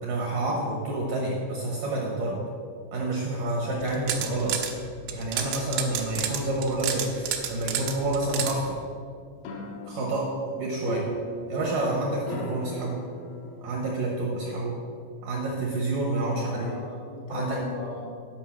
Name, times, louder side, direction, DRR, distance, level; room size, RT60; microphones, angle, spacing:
voice 1, 0.0-2.4 2.9-4.6 5.1-8.8 9.9-10.3 10.6-11.1 11.5-13.1 13.6-14.8 15.2-16.7 17.3-17.6, right 2 dB, 70° right, -3 dB, 2.1 m, -28 dB
sound 1, 3.8-4.7 5.1-8.5, right 9 dB, 90° right, 3.1 m, -30 dB
sound 2, 9.4-14.6, left 1 dB, 75° left, 2.3 m, -39 dB
voice 2, 16.4-18.1, left 3 dB, 90° left, -4 dB, 4.6 m, -38 dB
9.0 x 5.4 x 7.1 m, 2.3 s
omnidirectional pair, 5.2 m